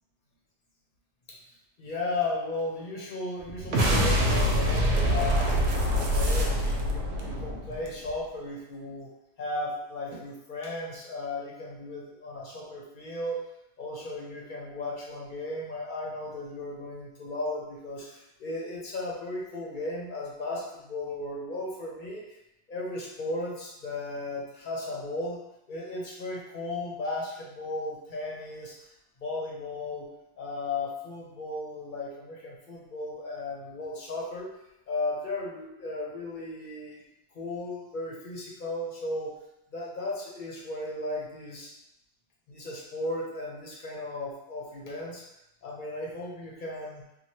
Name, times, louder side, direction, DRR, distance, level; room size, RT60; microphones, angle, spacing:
voice 1, 1.8-9.1 9.4-13.5 13.8-22.2 22.7-25.4 25.7-28.9 29.2-30.1 30.4-34.5 34.9-37.0 37.3-39.4 39.7-41.7 42.5-45.2 45.6-47.0, left 2 dB, 55° left, -3 dB, 0.8 m, -35 dB
sound 1, 3.4-3.6 4.4-7.3 7.7-8.1 8.3-8.4, right 2 dB, 55° right, 0.5 m, -42 dB
sound 2, 3.6-8.1, equal, 85° right, 1.0 m, -25 dB
3.2 x 2.2 x 2.9 m, 0.86 s
omnidirectional pair, 1.1 m